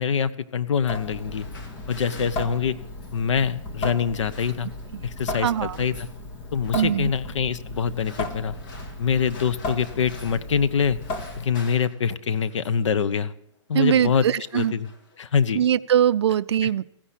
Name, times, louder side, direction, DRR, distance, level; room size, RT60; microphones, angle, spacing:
voice 1, 0.0-1.5 1.9-2.8 3.1-4.7 5.0-6.1 6.5-8.6 9.0-11.0 11.4-13.3 13.7-14.9 15.2-15.6 16.6-16.7, left 7 dB, 70° left, 1.0 m, -24 dB
Water tap faucet / Sink (filling or washing) / Drip, 0.8-11.7, left 2 dB, 25° left, 1.8 m, -35 dB
sound 1, 1.1-3.3 4.0-5.0 5.3-6.2 6.6-7.0 7.7-10.6 10.8-12.9 13.7-13.9 14.2-15.3, left 3 dB, 40° left, 2.5 m, -48 dB
voice 2, 5.3-5.8 6.7-7.1 13.7-14.7 15.5-16.8, right 10 dB, 60° right, 0.5 m, -22 dB
15.5 x 10.0 x 8.4 m
hypercardioid pair, 160°, 16 cm